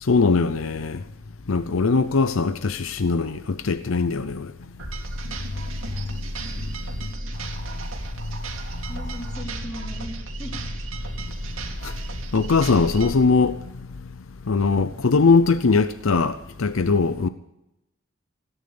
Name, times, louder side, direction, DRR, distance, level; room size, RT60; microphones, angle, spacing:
voice 1, 0.0-1.0 1.5-4.5 6.0-6.1 11.8-11.9 12.3-13.6 14.5-17.3, left 4 dB, 85° left, 0.7 m, -21 dB
sound 1, 4.8-13.1, right 1 dB, 85° right, 2.6 m, -33 dB
voice 2, 8.9-10.6, equal, 20° left, 3.6 m, -37 dB
17.5 x 10.0 x 6.9 m
head